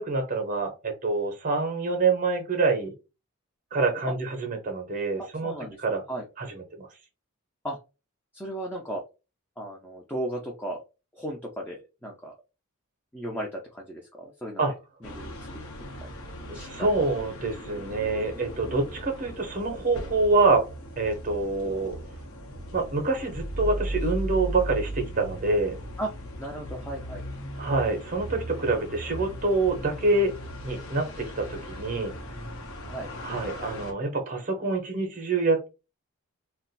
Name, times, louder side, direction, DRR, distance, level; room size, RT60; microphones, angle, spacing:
voice 1, 0.0-2.9 3.7-5.5 5.8-6.0 6.4-6.9 14.6-14.7 16.5-20.6 21.0-22.0 22.7-25.8 27.6-30.3 30.6-32.1 33.2-35.7, right 3 dB, 35° right, 4 dB, 0.7 m, -26 dB
voice 2, 5.2-5.8 6.1-6.2 7.6-7.8 8.3-9.0 9.6-10.8 11.1-12.3 13.1-14.6 15.0-15.4 16.5-16.9 26.0-26.1 26.4-27.2 32.9-33.1, right 1 dB, 10° left, -1 dB, 0.5 m, -35 dB
sound 1, 15.0-33.9, right 1 dB, 70° left, 0.8 m, -37 dB
2.4 x 2.2 x 3.9 m, 0.29 s
head